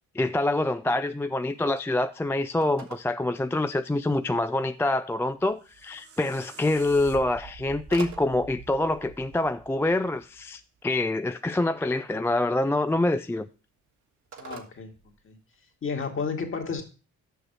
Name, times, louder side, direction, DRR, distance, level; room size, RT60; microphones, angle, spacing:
voice 1, 0.1-13.5, left 2 dB, 10° left, 0.3 m, -26 dB
Telephone, 1.3-15.8, right 7 dB, 65° right, 1.6 m, -51 dB
sound 1, 5.4-10.5, right 6 dB, 50° right, 1.5 m, -47 dB
voice 2, 14.4-14.9 15.2-15.4 15.8-16.8, left 5 dB, 45° left, 2.1 m, -31 dB
6.8 x 6.0 x 6.5 m
cardioid pair, 90°, 30 cm